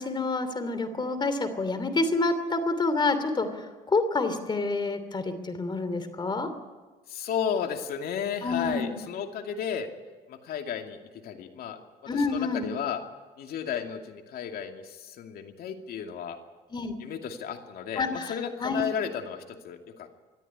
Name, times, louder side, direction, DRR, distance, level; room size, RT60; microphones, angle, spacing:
voice 1, 0.0-6.5 8.4-9.0 12.1-12.7 16.7-16.9 18.0-18.3 18.6-18.8, left 3 dB, 25° left, 11 dB, 3.0 m, -28 dB
voice 2, 7.1-9.9 10.3-11.8 12.1-13.0 13.4-16.4 17.0-20.2, left 8 dB, 65° left, 5 dB, 2.6 m, -33 dB
23.0 x 13.5 x 9.7 m, 1.3 s
cardioid pair, 110°, 17 cm